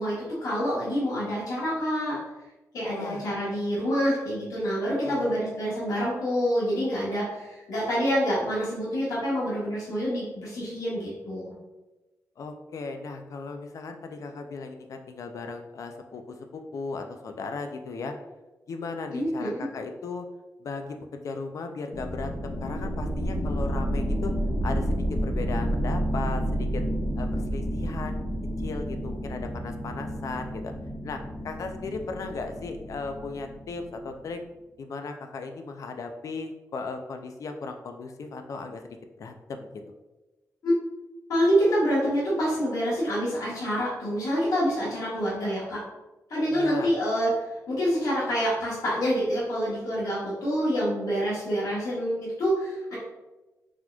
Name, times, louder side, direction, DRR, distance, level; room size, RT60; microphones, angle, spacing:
voice 1, 0.0-2.2 2.7-11.6 19.1-19.6 40.6-40.8 41.3-45.8 46.3-47.3 47.7-53.0, equal, 80° left, -8 dB, 1.2 m, -27 dB
voice 2, 2.9-3.2 5.0-5.4 12.4-18.1 18.7-20.3 20.6-24.3 24.6-26.8 27.2-28.2 28.6-30.7 31.0-34.4 34.8-39.8 46.5-46.9, left 4 dB, 65° left, 6 dB, 0.4 m, -36 dB
sound 1, 21.9-34.2, equal, 20° left, 1.0 m, -30 dB
4.1 x 2.9 x 2.3 m, 1.1 s
wide cardioid pair, 130°, 6 cm